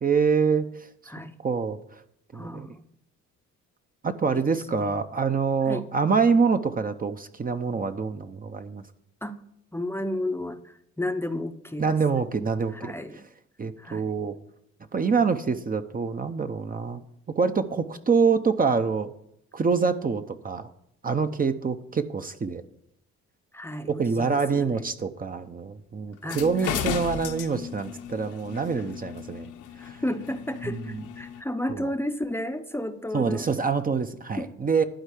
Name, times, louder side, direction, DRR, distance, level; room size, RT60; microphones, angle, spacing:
voice 1, 0.0-0.7 1.4-1.8 2.3-2.7 4.0-8.8 11.8-12.9 13.6-14.3 14.9-17.0 17.3-19.1 19.5-20.7 21.0-22.6 23.9-29.5 30.6-31.0 31.7-31.9 33.1-34.8, right 5 dB, 30° right, 8 dB, 0.7 m, -25 dB
voice 2, 2.3-2.9 4.3-4.8 5.7-5.8 9.2-9.4 9.7-12.2 12.7-13.2 13.8-14.1 23.5-24.8 26.2-26.8 29.8-33.5 34.4-34.5, left 1 dB, 10° left, 8 dB, 0.7 m, -33 dB
sound 1, 26.2-31.4, left 8 dB, 85° left, 1.2 m, -35 dB
11.5 x 4.5 x 8.2 m, 0.73 s
cardioid pair, 90°, 30 cm